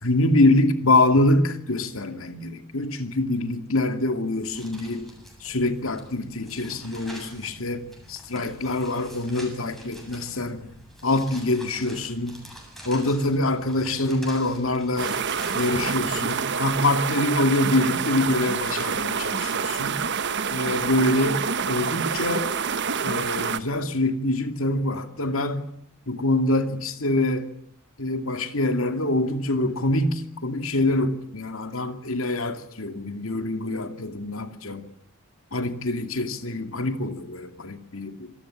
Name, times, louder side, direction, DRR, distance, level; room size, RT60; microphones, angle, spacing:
voice 1, 0.0-5.1 5.4-10.7 11.0-12.4 12.8-15.2 15.5-20.0 20.5-22.5 23.0-25.6 26.1-27.5 28.0-34.9 35.5-38.3, left 2 dB, 70° left, 2.5 m, -25 dB
sound 1, 4.4-16.4, equal, ahead, 7.9 m, -45 dB
sound 2, 15.0-23.6, right 6 dB, 55° right, 1.2 m, -27 dB
26.5 x 19.5 x 8.7 m
head